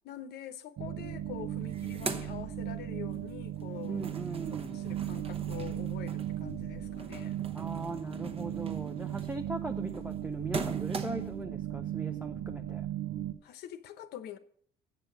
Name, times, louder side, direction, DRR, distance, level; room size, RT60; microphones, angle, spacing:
voice 1, 0.0-4.0 4.5-7.4 13.4-14.4, left 10 dB, 75° left, 0.9 m, -45 dB
sound 1, 0.8-13.3, right 12 dB, 70° right, 0.8 m, -37 dB
sound 2, 1.0-1.1 1.4-3.2 3.5-11.4, right 3 dB, 35° right, 1.0 m, -42 dB
voice 2, 3.9-4.9 7.5-12.9, right 2 dB, 10° right, 0.6 m, -39 dB
7.9 x 6.6 x 7.8 m
cardioid pair, 110°, 17 cm